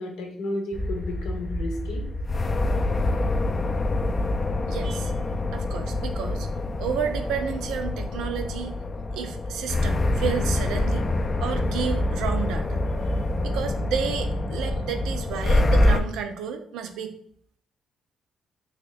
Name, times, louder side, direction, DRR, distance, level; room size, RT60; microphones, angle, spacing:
voice 1, 0.0-2.1, left 1 dB, 85° left, 2 dB, 0.8 m, -32 dB
sound 1, 0.7-16.0, left 2 dB, 35° left, 0.3 m, -26 dB
voice 2, 4.7-5.1 5.5-6.5 6.8-8.7 9.1-11.1 11.4-12.8 13.4-17.2, right 7 dB, 85° right, 7 dB, 0.4 m, -31 dB
2.9 x 2.6 x 3.9 m, 0.64 s
cardioid pair, 90°, 0 cm